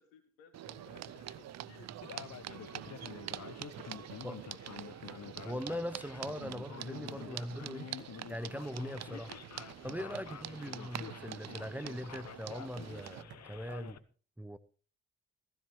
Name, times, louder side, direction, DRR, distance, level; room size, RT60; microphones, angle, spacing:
voice 1, 0.0-3.3 3.7-4.8 9.7-10.1, left 7 dB, 85° left, 2.0 m, -60 dB
sound 1, 0.5-13.2, right 12 dB, 45° right, 0.6 m, -46 dB
sound 2, 0.6-13.9, right 7 dB, 70° right, 2.1 m, -55 dB
Male speech man speaking, 2.0-14.0, left 9 dB, 45° left, 1.1 m, -49 dB
voice 2, 5.4-7.9 8.3-9.3 9.8-14.0 14.4-14.6, equal, 5° right, 0.9 m, -41 dB
15.5 x 15.0 x 3.2 m
hypercardioid pair, 50°, 37 cm